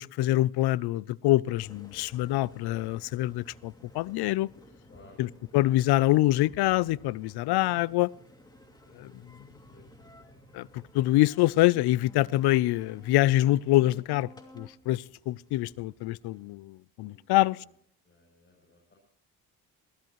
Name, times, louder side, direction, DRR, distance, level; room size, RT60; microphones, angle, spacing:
voice 1, 0.0-4.5 5.2-5.3 5.5-8.1 9.0-9.1 10.5-14.3 14.6-17.6, left 16 dB, 90° left, 0.5 m, -25 dB
Engine, 1.6-16.6, left 1 dB, 10° left, 2.6 m, -54 dB
voice 2, 4.9-5.2 9.6-9.8 17.0-17.7 18.0-18.9, left 3 dB, 30° left, 7.9 m, -56 dB
22.5 x 16.0 x 3.1 m
cardioid pair, 130°, 38 cm